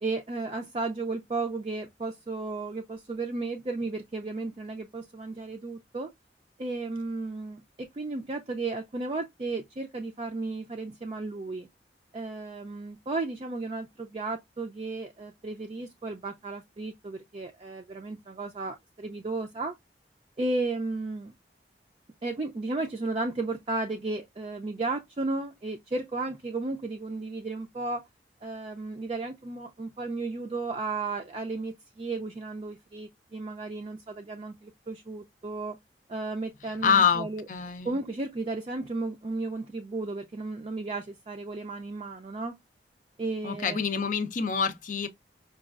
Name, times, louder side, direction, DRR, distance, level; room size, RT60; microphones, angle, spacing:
voice 1, 0.0-6.1 6.6-11.7 12.1-19.8 20.4-21.3 22.2-28.1 28.4-35.8 36.1-37.4 37.8-42.6 43.2-43.8, right 3 dB, 30° right, 0.4 m, -34 dB
voice 2, 36.8-38.0 43.4-45.1, left 6 dB, 45° left, 0.5 m, -26 dB
5.0 x 2.3 x 2.3 m
head